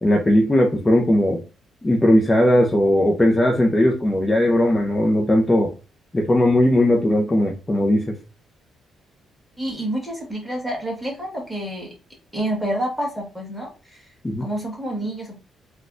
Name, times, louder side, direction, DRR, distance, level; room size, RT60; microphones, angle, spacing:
voice 1, 0.0-1.4 1.8-5.7 6.1-8.1 14.2-14.5, left 1 dB, 20° left, 1 dB, 0.6 m, -18 dB
voice 2, 9.6-11.9 12.3-14.0 14.4-15.4, right 1 dB, 5° right, -1 dB, 1.7 m, -28 dB
3.9 x 2.3 x 2.5 m, 0.33 s
cardioid pair, 90°, 0 cm